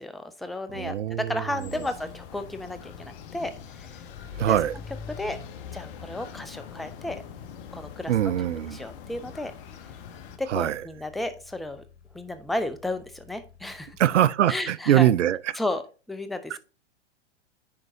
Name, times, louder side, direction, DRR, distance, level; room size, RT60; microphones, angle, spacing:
voice 1, 0.0-3.5 3.8-3.9 4.5-4.6 5.2-5.4 5.7-7.2 7.7-8.3 8.7-9.5 10.4-11.8 12.1-14.0 14.5-15.1 15.6-16.6, left 1 dB, ahead, 0.5 m, -33 dB
sound 1, 0.7-14.3, left 6 dB, 75° left, 2.1 m, -53 dB
voice 2, 0.7-1.9 4.3-4.8 8.1-8.9 10.5-10.8 14.0-15.6 16.5-16.6, right 11 dB, 85° right, 0.5 m, -23 dB
sound 2, 1.6-10.4, left 7 dB, 50° left, 1.2 m, -43 dB
10.0 x 4.6 x 2.7 m
hypercardioid pair, 120°, 35 cm